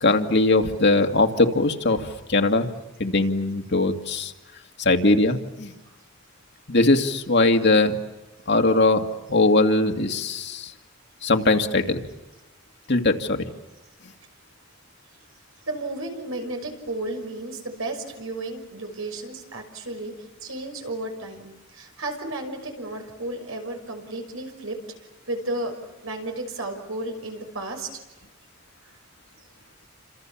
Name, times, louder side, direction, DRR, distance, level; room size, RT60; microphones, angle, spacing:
voice 1, 0.0-2.7 3.0-4.3 4.8-5.7 6.7-8.0 8.5-10.7 11.2-12.0 12.9-13.5, left 2 dB, 55° left, 4 dB, 2.2 m, -20 dB
voice 2, 15.7-20.1 20.4-24.8 25.3-25.7 26.0-28.0, right 2 dB, 85° right, 4 dB, 6.1 m, -33 dB
29.5 x 27.0 x 7.4 m, 1.1 s
head